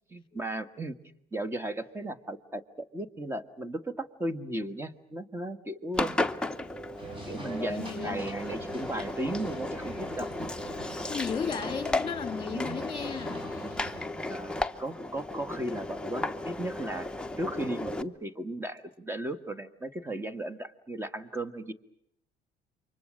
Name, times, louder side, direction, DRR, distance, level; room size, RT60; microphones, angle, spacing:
voice 1, 0.1-0.9 1.3-6.1 7.3-10.3 12.5-12.8 14.3-17.1 17.4-21.7, right 1 dB, 15° right, 1.5 m, -36 dB
Engine, 5.9-18.0, left 2 dB, 5° left, 0.9 m, -34 dB
sound 1, 7.0-14.0, right 1 dB, 30° right, 5.1 m, -46 dB
voice 2, 7.7-8.3 11.1-13.5, left 6 dB, 30° left, 2.1 m, -35 dB
28.5 x 24.5 x 6.4 m
cardioid pair, 110°, 17 cm